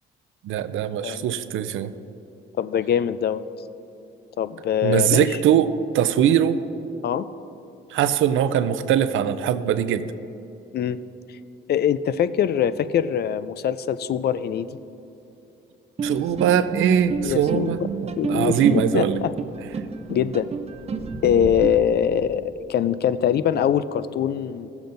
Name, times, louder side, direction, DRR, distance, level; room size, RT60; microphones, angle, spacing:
voice 1, 0.4-1.9 4.8-6.6 7.9-10.0 16.0-19.2, right 9 dB, 80° right, 12 dB, 0.5 m, -21 dB
voice 2, 2.6-3.4 4.4-5.4 7.0-7.3 10.7-11.0 11.7-14.7 17.2-17.9 18.2-19.3 20.1-20.5 21.2-24.7, left 9 dB, 55° left, 15 dB, 0.4 m, -23 dB
sound 1, 16.0-21.7, right 5 dB, 30° right, 0.6 m, -30 dB
17.0 x 7.0 x 2.6 m, 2.9 s
cardioid pair, 90°, 20 cm